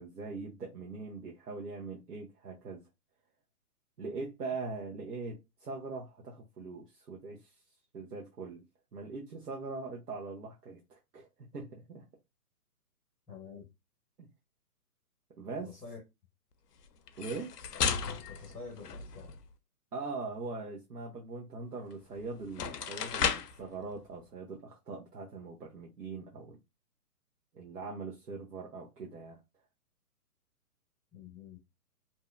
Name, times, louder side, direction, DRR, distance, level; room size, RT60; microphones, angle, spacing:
voice 1, 0.0-2.8 4.0-7.5 7.9-8.6 8.9-11.3 11.5-12.1 15.4-15.7 17.2-17.6 19.9-26.6 27.5-29.4, right 3 dB, 85° right, 0.8 m, -41 dB
voice 2, 13.3-13.6 15.6-16.0 18.3-19.3 31.1-31.6, left 5 dB, ahead, 0.3 m, -47 dB
sound 1, 17.1-19.5 21.9-22.0 22.4-23.6, left 7 dB, 85° left, 0.5 m, -34 dB
2.6 x 2.1 x 2.4 m
figure-of-eight pair, 135°, 46 cm